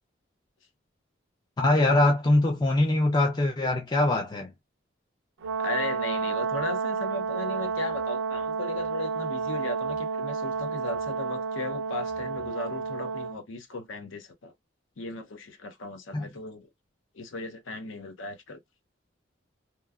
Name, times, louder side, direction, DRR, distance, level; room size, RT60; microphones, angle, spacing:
voice 1, 1.6-4.5 16.1-16.3, left 2 dB, 20° left, 0.3 m, -23 dB
Brass instrument, 5.4-13.4, right 5 dB, 80° right, 0.6 m, -31 dB
voice 2, 5.6-14.5 15.0-16.7 17.1-18.6, left 3 dB, 80° left, 0.6 m, -36 dB
3.0 x 2.2 x 2.3 m
head